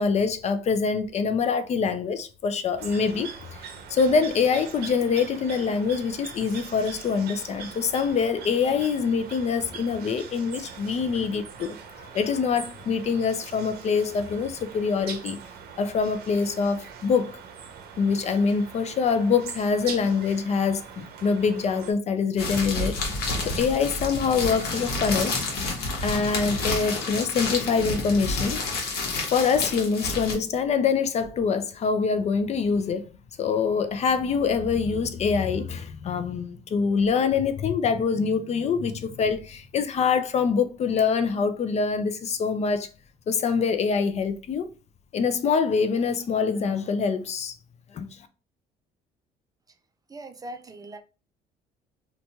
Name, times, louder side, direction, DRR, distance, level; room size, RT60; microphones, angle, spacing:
voice 1, 0.0-3.3 3.6-15.4 15.8-17.4 18.0-22.9 23.4-25.4 26.0-28.6 29.3-33.1 33.4-42.9 43.3-44.7 45.1-47.5 47.9-48.3, left 5 dB, 40° left, 0.4 m, -25 dB
sound 1, 2.8-21.9, right 6 dB, 70° right, 0.7 m, -42 dB
sound 2, 22.4-30.3, left 2 dB, 70° left, 1.0 m, -29 dB
voice 2, 50.1-51.0, right 1 dB, 20° right, 0.4 m, -40 dB
2.9 x 2.2 x 2.8 m
cardioid pair, 110°, 17 cm